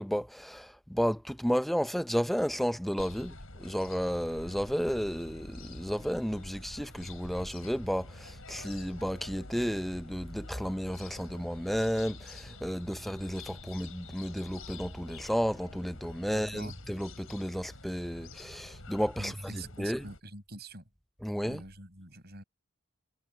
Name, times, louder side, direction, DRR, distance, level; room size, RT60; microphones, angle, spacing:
voice 1, 0.0-20.0 21.2-21.6, equal, ahead, 0.5 m, -32 dB
sound 1, 3.0-20.2, left 2 dB, 65° left, 5.8 m, -47 dB
voice 2, 16.3-16.7 19.2-20.9 21.4-22.4, right 2 dB, 45° right, 7.4 m, -45 dB
head